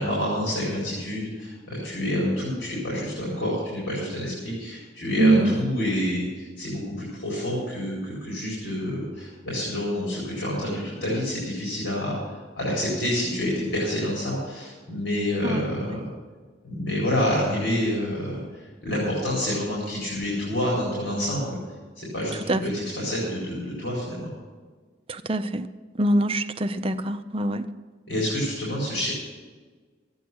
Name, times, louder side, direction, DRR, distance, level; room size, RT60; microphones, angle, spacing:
voice 1, 0.0-16.0 16.6-21.6 22.0-24.3 28.1-29.1, left 1 dB, 75° left, -6 dB, 4.3 m, -28 dB
voice 2, 5.2-5.5 15.4-15.6 22.5-22.6 25.3-25.7 26.0-27.6, right 1 dB, 30° right, 9 dB, 0.5 m, -23 dB
13.5 x 9.4 x 6.2 m, 1.4 s
head